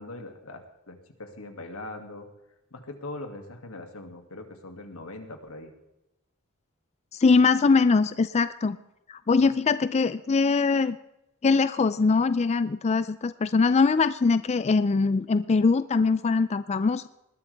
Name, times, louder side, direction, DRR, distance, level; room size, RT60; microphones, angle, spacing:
voice 1, 0.0-2.3 2.7-5.7 9.4-9.5, left 2 dB, 85° left, 5 dB, 2.4 m, -41 dB
voice 2, 7.1-8.8 9.1-11.0 11.4-17.1, left 4 dB, 30° left, 14 dB, 0.4 m, -22 dB
20.0 x 12.0 x 3.5 m, 0.91 s
head